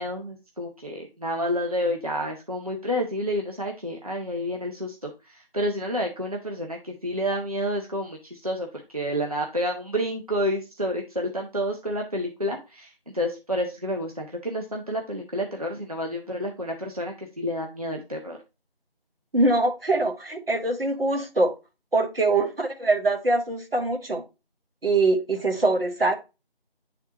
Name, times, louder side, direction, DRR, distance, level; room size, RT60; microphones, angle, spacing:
voice 1, 0.0-8.7 8.9-18.4, equal, 40° right, 0.7 m, -29 dB
voice 2, 19.3-21.5 21.9-24.2 24.8-26.1, right 2 dB, 70° right, 1.4 m, -23 dB
9.3 x 3.6 x 2.8 m
figure-of-eight pair, 175°, 30 cm